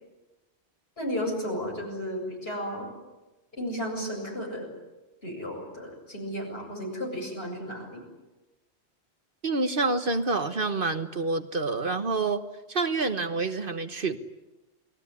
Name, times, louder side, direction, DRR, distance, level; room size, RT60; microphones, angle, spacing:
voice 1, 1.0-2.9 3.5-4.7 5.2-8.0, equal, 60° left, 1 dB, 8.3 m, -33 dB
voice 2, 9.4-12.4 12.7-14.2, right 3 dB, 50° right, 9 dB, 1.4 m, -27 dB
30.0 x 20.5 x 9.7 m, 1.1 s
omnidirectional pair, 1.1 m